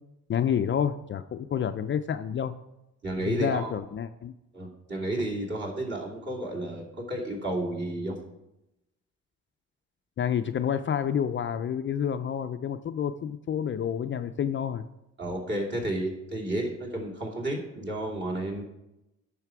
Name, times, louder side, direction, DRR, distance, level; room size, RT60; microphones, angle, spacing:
voice 1, 0.3-2.5 3.3-4.3 10.2-14.8, left 8 dB, 40° left, 9 dB, 0.4 m, -29 dB
voice 2, 3.0-3.8 4.5-8.2 15.2-18.6, right 1 dB, 35° right, -2 dB, 2.8 m, -32 dB
9.4 x 5.8 x 4.7 m, 0.90 s
cardioid pair, 90°, 30 cm